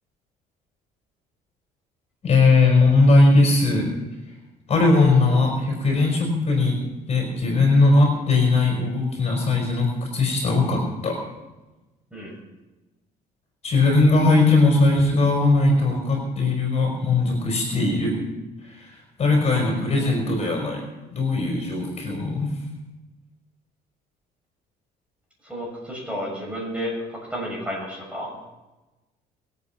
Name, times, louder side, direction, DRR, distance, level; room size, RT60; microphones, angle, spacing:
voice 1, 2.2-3.9 4.7-6.8 7.1-11.2 13.6-18.1 19.2-20.8 21.1-22.5, left 3 dB, 40° left, 0 dB, 5.2 m, -19 dB
voice 2, 25.4-28.3, equal, 5° right, -2 dB, 6.8 m, -32 dB
22.0 x 8.8 x 5.9 m, 1.1 s
cardioid pair, 110°, 17 cm